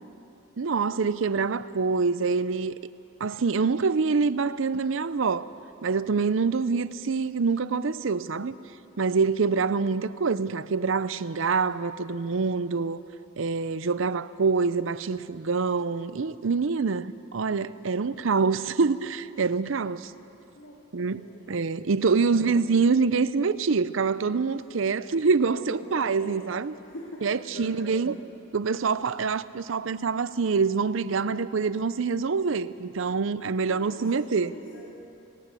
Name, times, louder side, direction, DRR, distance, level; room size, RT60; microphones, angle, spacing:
voice 1, 0.6-2.8 3.2-5.5 5.8-8.5 9.0-13.0 13.4-20.1 20.9-21.2 21.5-26.7 27.2-28.1 28.5-34.5, right 4 dB, 70° right, 0.6 m, -25 dB
voice 2, 20.5-21.5 22.1-22.8 25.5-26.4 26.8-28.1 33.6-34.8, left 1 dB, 75° left, 3.1 m, -44 dB
19.5 x 18.5 x 8.3 m
head